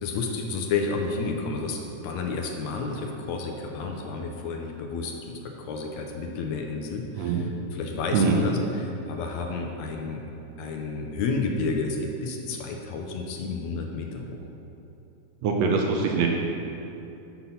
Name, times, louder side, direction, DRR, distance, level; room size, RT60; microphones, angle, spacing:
voice 1, 0.0-5.1 5.4-7.5 7.7-10.2 10.6-14.4, left 4 dB, 75° left, 2 dB, 1.7 m, -31 dB
voice 2, 7.2-7.5 8.1-8.5 15.4-16.3, right 4 dB, 75° right, 1 dB, 1.7 m, -23 dB
7.1 x 5.9 x 5.5 m, 2.9 s
omnidirectional pair, 3.5 m